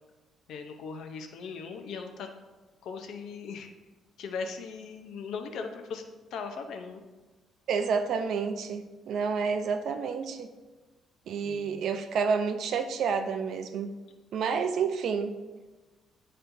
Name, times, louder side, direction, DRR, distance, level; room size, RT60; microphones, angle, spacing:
voice 1, 0.5-2.3 2.8-3.7 4.2-6.0 6.3-7.0 11.4-11.9, left 5 dB, 70° left, 5 dB, 0.7 m, -39 dB
voice 2, 7.7-10.5 11.3-13.9 14.3-15.3, right 5 dB, 60° right, 8 dB, 0.5 m, -29 dB
10.0 x 4.3 x 2.7 m, 1.2 s
cardioid pair, 145°, 0 cm